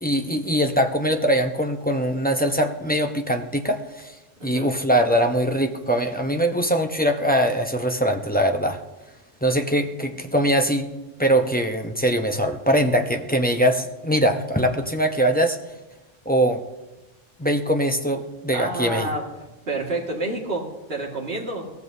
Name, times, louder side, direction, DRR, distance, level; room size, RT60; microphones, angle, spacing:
voice 1, 0.0-4.1 4.4-8.8 9.4-10.9 11.2-15.6 16.3-16.6 17.4-19.1, equal, 10° left, 3 dB, 0.7 m, -22 dB
voice 2, 4.4-4.8 18.5-19.3 19.7-21.7, right 2 dB, 50° right, -1 dB, 2.3 m, -29 dB
22.5 x 17.0 x 2.8 m, 1.1 s
omnidirectional pair, 1.3 m